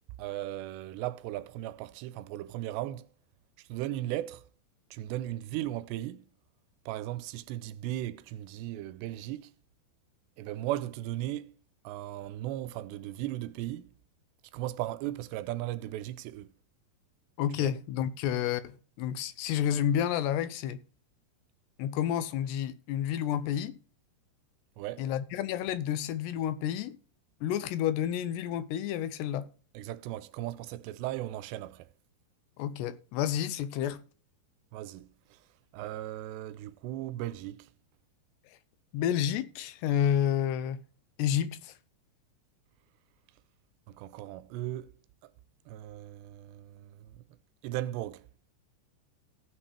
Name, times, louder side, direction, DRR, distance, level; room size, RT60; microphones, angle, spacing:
voice 1, 0.2-3.1 3.6-4.4 4.9-6.2 6.9-9.5 10.4-11.5 11.8-13.9 14.5-16.5 17.6-17.8 24.8-25.1 29.7-31.9 34.7-35.4 35.7-37.7 43.9-44.9 45.2-45.3 45.7-47.2 47.6-48.3, right 14 dB, 85° right, 2.7 m, -37 dB
voice 2, 17.4-20.8 21.8-23.8 25.0-27.0 27.4-29.5 32.6-34.0 38.9-40.8 41.2-41.7, left 10 dB, 85° left, 2.8 m, -30 dB
16.5 x 5.8 x 3.2 m
omnidirectional pair, 5.0 m